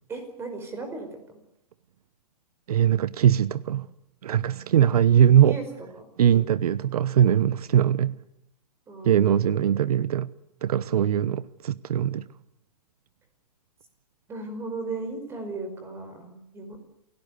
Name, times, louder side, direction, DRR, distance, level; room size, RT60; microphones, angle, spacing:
voice 1, 0.1-1.1 5.4-5.6 5.9-6.0 6.3-6.5 8.9-9.8 14.3-16.8, right 3 dB, 10° right, 5.0 m, -36 dB
voice 2, 2.7-3.9 4.2-5.6 6.2-8.2 9.0-10.3 10.6-12.3, right 10 dB, 75° right, 0.9 m, -21 dB
28.0 x 17.5 x 8.3 m
hypercardioid pair, 160°, 20 cm